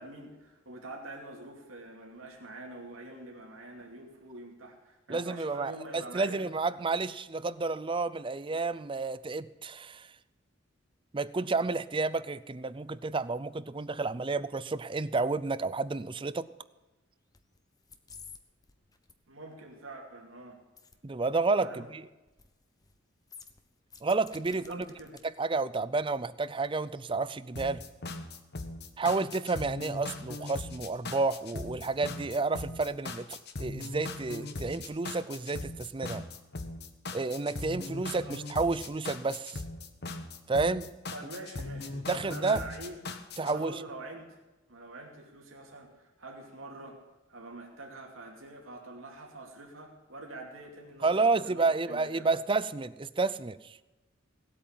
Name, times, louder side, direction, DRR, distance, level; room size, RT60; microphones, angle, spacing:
voice 1, 0.0-6.4 19.3-20.6 21.6-21.9 24.5-25.2 38.0-38.4 41.1-43.0 43.4-44.4 44.7-47.0 47.3-52.3, right 2 dB, 85° right, 0 dB, 2.7 m, -45 dB
voice 2, 5.1-10.1 11.1-16.5 21.0-21.8 24.0-24.8 25.2-27.8 29.0-36.2 37.1-39.6 40.5-40.9 42.1-42.6 43.4-43.8 51.0-53.8, right 3 dB, 25° right, 16 dB, 0.5 m, -30 dB
sound 1, 17.3-17.6 17.8-18.4 18.6-19.1 20.8-21.0 21.2-21.3 22.3-22.5 22.8-23.0 23.3-25.2 25.6-25.7, left 5 dB, 20° left, 0.9 m, -51 dB
sound 2, 27.5-43.5, left 2 dB, 55° left, 1.2 m, -39 dB
18.0 x 8.6 x 7.4 m, 1.1 s
head